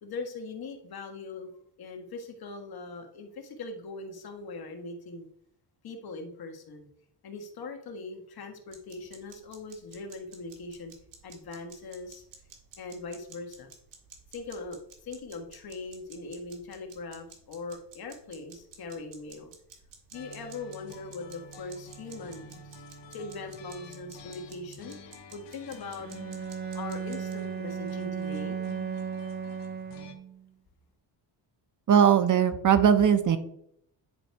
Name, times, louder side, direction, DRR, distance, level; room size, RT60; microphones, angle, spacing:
voice 1, 0.0-1.5 1.8-5.3 5.8-6.9 7.2-10.9 11.2-12.2 12.8-13.7 14.3-19.5 20.1-22.8 23.1-25.0 25.3-26.1 26.7-28.6, left 3 dB, 55° left, 3 dB, 1.7 m, -41 dB
sound 1, 8.7-27.3, right 6 dB, 70° right, 1.9 m, -53 dB
sound 2, 20.1-30.1, left 2 dB, 75° left, 1.5 m, -49 dB
Bowed string instrument, 26.0-30.4, right 7 dB, 25° right, 0.4 m, -35 dB
voice 2, 31.9-33.4, right 8 dB, 45° right, 10 dB, 0.9 m, -20 dB
10.0 x 4.0 x 4.7 m, 0.70 s
cardioid pair, 130°, 44 cm